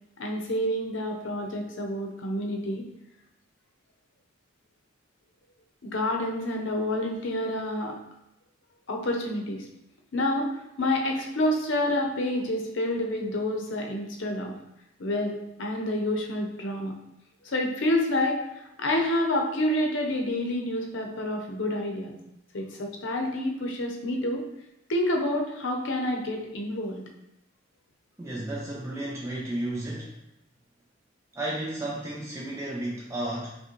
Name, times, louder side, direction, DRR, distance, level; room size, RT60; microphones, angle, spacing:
voice 1, 0.2-2.8 5.8-8.0 8.9-9.6 10.1-14.5 15.0-16.9 17.4-18.4 18.8-22.2 22.5-24.4 24.9-27.0, left 1 dB, 70° left, 2 dB, 0.7 m, -28 dB
voice 2, 28.2-30.1 31.3-33.5, right 1 dB, 15° right, -5 dB, 0.4 m, -33 dB
4.9 x 2.2 x 3.0 m, 0.84 s
head